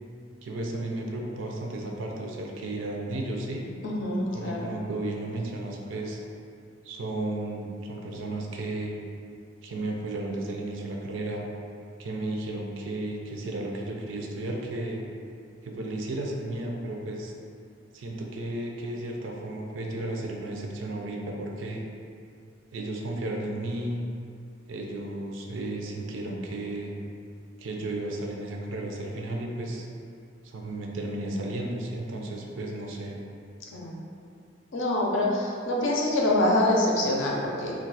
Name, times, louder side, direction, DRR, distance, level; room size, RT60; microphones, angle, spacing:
voice 1, 0.4-3.6 4.3-6.2 6.8-9.0 9.6-11.4 12.0-15.0 15.6-17.3 17.9-21.8 22.7-24.0 24.7-26.9 27.6-29.9 30.4-33.2, right 2 dB, 80° right, 0 dB, 0.4 m, -33 dB
voice 2, 3.8-4.7 33.7-34.0 34.7-37.7, left 1 dB, 75° left, -3 dB, 0.5 m, -25 dB
2.3 x 2.3 x 4.0 m, 2.4 s
head